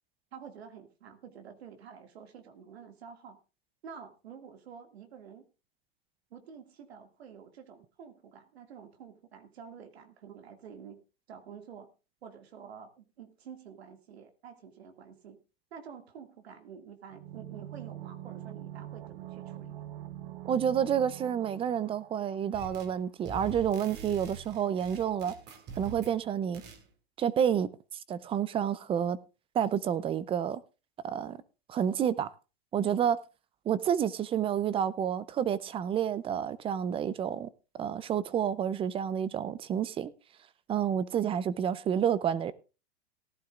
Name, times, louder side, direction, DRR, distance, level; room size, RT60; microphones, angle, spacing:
voice 1, 0.3-3.4 3.8-5.4 6.3-11.0 11.3-11.9 12.2-15.4 15.7-19.8, right 7 dB, 80° right, 2.3 m, -49 dB
sound 1, 17.1-22.8 23.0-23.1, right 13 dB, 60° right, 0.9 m, -44 dB
voice 2, 20.4-25.3 25.8-26.6 27.2-27.7 28.1-29.2 29.5-30.6 31.0-31.4 31.7-32.3 32.7-33.2 33.7-37.5 37.8-40.1 40.7-42.5, right 9 dB, 15° right, 0.5 m, -29 dB
sound 2, 22.5-23.0 23.2-26.2 26.5-26.8, right 4 dB, 35° right, 2.4 m, -44 dB
18.5 x 11.5 x 2.5 m
hypercardioid pair, 130°, 31 cm